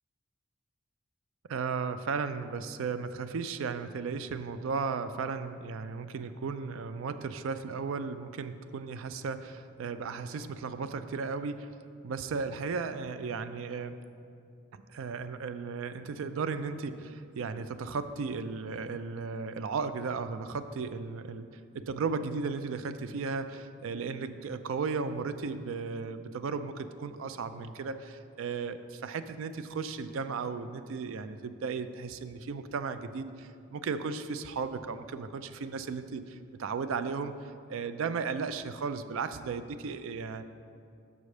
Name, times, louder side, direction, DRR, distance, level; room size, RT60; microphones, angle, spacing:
voice 1, 1.5-14.0 14.9-21.5 21.7-37.3 37.7-40.4, right 5 dB, 70° right, 10 dB, 0.4 m, -35 dB
6.1 x 4.9 x 6.5 m, 2.4 s
head